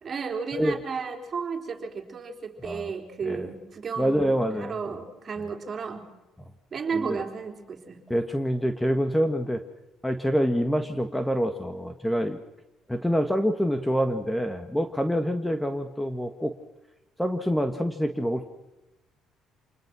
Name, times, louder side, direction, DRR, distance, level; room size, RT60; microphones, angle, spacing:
voice 1, 0.0-6.1 6.7-8.0, right 5 dB, 40° right, 4 dB, 4.0 m, -33 dB
voice 2, 4.0-4.8 6.9-7.2 8.1-9.6 10.0-12.4 12.9-16.5 17.2-18.4, equal, 5° left, 8 dB, 1.6 m, -26 dB
27.5 x 21.0 x 6.2 m, 1.0 s
cardioid pair, 85°, 0 cm